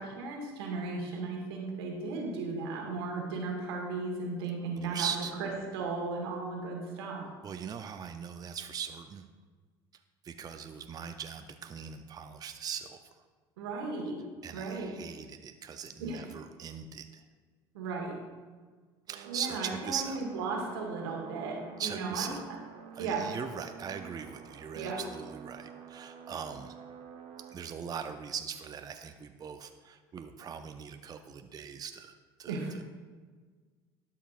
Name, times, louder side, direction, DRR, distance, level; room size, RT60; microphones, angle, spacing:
voice 1, 0.0-5.1 5.4-7.2 13.6-14.2 14.5-15.0 16.0-16.3 17.7-18.2 19.3-22.3 23.0-23.2 24.7-25.0 32.5-32.7, right 4 dB, 85° right, 0 dB, 1.5 m, -35 dB
voice 2, 4.8-5.3 7.4-9.3 10.2-13.0 14.4-17.2 19.1-20.2 21.8-22.4 23.0-26.7 27.5-32.8, right 7 dB, 30° right, 7 dB, 0.5 m, -40 dB
sound 1, 19.1-27.6, right 6 dB, 55° right, 0.8 m, -49 dB
12.0 x 5.7 x 2.4 m, 1.5 s
hypercardioid pair, 75°, 13 cm